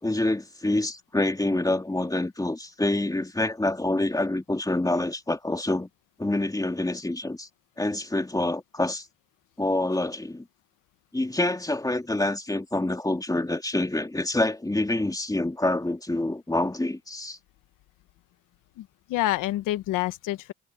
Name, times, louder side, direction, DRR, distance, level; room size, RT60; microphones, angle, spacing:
voice 1, 0.0-5.9 6.2-7.5 7.8-9.1 9.6-10.4 11.1-17.4, left 2 dB, 10° left, 2.4 m, -26 dB
voice 2, 18.8-20.5, left 15 dB, 90° left, 1.3 m, -28 dB
supercardioid pair, 60°, 31 cm